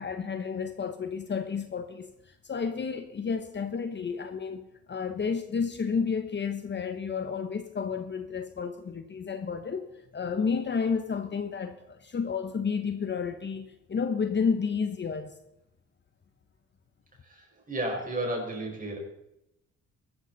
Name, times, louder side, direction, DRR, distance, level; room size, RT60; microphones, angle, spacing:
voice 1, 0.0-15.3, left 5 dB, 35° left, 8 dB, 1.2 m, -31 dB
voice 2, 17.7-19.0, right 1 dB, 25° right, 1 dB, 5.2 m, -32 dB
15.5 x 13.0 x 4.2 m, 0.85 s
cardioid pair, 90°, 30 cm